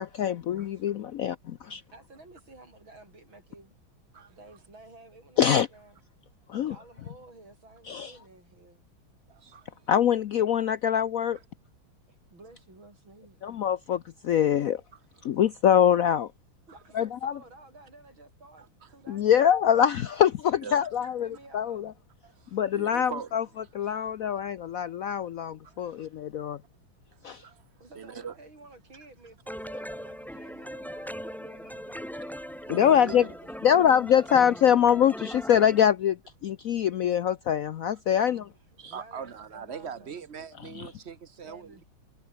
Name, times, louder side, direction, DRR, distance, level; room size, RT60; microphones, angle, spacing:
voice 1, 0.0-1.4 1.7-1.8 5.4-5.7 6.5-6.8 7.9-8.1 9.9-11.4 13.4-14.8 15.2-16.3 16.9-17.3 19.1-21.9 22.5-23.4 23.7-26.6 27.2-27.4 32.7-33.3 33.6-36.2 36.4-38.4 40.8-40.9, left 9 dB, 85° left, 0.7 m, -24 dB
voice 2, 1.9-3.8 4.3-6.0 6.5-8.8 12.1-13.4 16.7-19.7 21.0-22.0 25.8-26.1 27.8-32.4 32.8-33.5 38.1-38.5 38.8-40.2 41.4-41.9, right 2 dB, 70° right, 8.7 m, -53 dB
voice 3, 9.3-9.9 15.2-15.4 16.7-16.8 18.6-18.9 20.6-20.9 22.2-24.1 25.6-26.0 27.1-27.6 27.9-28.4 32.7-33.4 38.8-41.8, right 7 dB, 35° right, 1.3 m, -42 dB
sound 1, 29.5-35.9, equal, ahead, 2.5 m, -40 dB
omnidirectional pair, 2.3 m